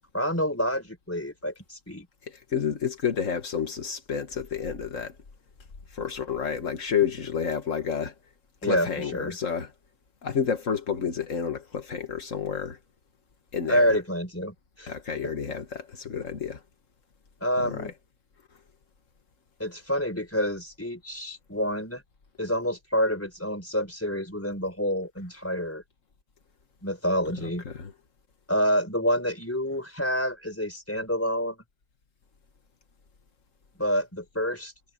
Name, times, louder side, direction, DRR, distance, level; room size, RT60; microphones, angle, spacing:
voice 1, 0.1-2.1 8.6-9.4 13.7-14.9 15.2-15.3 17.4-17.9 19.6-22.0 22.4-25.8 26.8-27.6 28.5-31.6 33.8-34.7, equal, 10° left, 4.9 m, -28 dB
voice 2, 2.5-5.1 5.9-8.1 8.6-9.7 10.2-12.8 13.5-14.0 14.9-16.6 17.6-17.9 27.4-27.9, left 7 dB, 85° left, 2.0 m, -30 dB
omnidirectional pair, 1.3 m